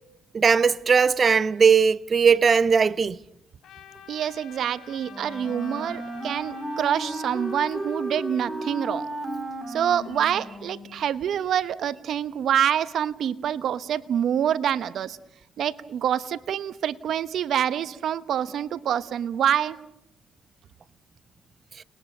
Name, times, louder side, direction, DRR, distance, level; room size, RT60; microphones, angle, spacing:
voice 1, 0.3-3.2, right 6 dB, 40° right, 0.8 m, -19 dB
Trumpet, 3.6-8.3, left 8 dB, 75° left, 3.5 m, -48 dB
voice 2, 4.1-9.1 9.7-15.2 15.6-19.8, right 9 dB, 70° right, 1.1 m, -26 dB
Wind instrument woodwind instrument, 5.0-11.0, right 1 dB, 10° right, 4.0 m, -34 dB
30.0 x 21.5 x 6.7 m
cardioid pair, 90°, 0 cm